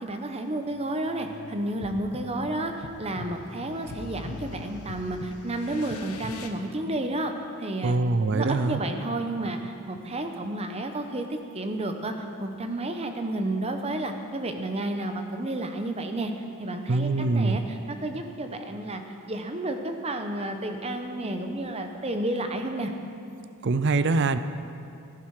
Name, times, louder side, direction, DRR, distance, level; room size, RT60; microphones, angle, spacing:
voice 1, 0.0-7.3 7.6-8.0 8.3-12.1 12.4-16.3 16.6-19.0 19.3-22.9, right 1 dB, 30° right, 5 dB, 0.9 m, -31 dB
sound 1, 0.7-6.5, left 2 dB, 85° left, 1.1 m, -42 dB
voice 2, 7.8-8.8 16.9-17.6 23.6-24.4, right 3 dB, 55° right, 12 dB, 0.5 m, -23 dB
16.0 x 11.0 x 4.9 m, 2.5 s
head